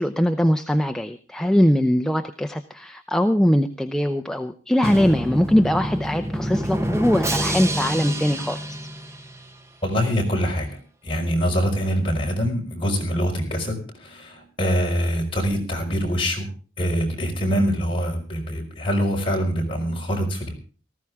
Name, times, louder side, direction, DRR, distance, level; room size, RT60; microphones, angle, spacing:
voice 1, 0.0-8.8, equal, 5° left, 6 dB, 0.6 m, -21 dB
Drum, 4.8-9.7, equal, 15° right, 1.1 m, -27 dB
voice 2, 9.8-16.5 16.8-20.5, equal, 30° left, 0 dB, 5.1 m, -24 dB
18.5 x 15.0 x 3.6 m, 0.37 s
head